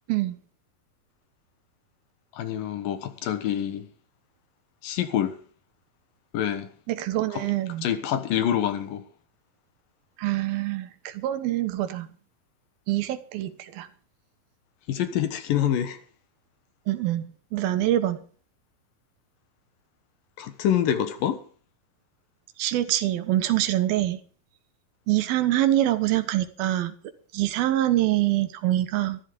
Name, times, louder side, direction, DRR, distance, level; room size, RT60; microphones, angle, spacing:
voice 1, 2.3-3.9 4.8-5.3 6.3-6.7 7.3-7.4 7.8-9.1 14.9-16.0 20.4-21.4, left 10 dB, 75° left, 2.9 m, -26 dB
voice 2, 6.9-7.9 10.2-12.1 12.9-13.9 16.9-17.2 17.5-18.2 22.6-24.2 25.1-26.9 27.3-29.2, right 14 dB, 85° right, 2.9 m, -25 dB
13.5 x 13.0 x 5.2 m
omnidirectional pair, 4.2 m